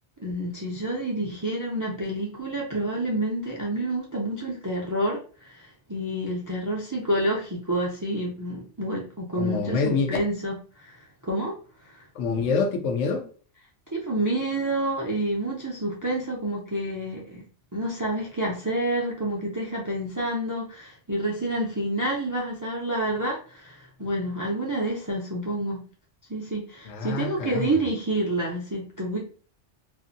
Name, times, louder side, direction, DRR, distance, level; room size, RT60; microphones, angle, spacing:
voice 1, 0.2-5.2 5.4-11.5 11.9-12.0 13.9-17.4 17.7-25.8 26.3-29.2, right 1 dB, 30° right, 0.3 m, -28 dB
voice 2, 9.3-10.2 12.1-13.3 26.9-27.8, left 4 dB, 80° left, 0.9 m, -26 dB
2.6 x 2.5 x 2.5 m
omnidirectional pair, 1.2 m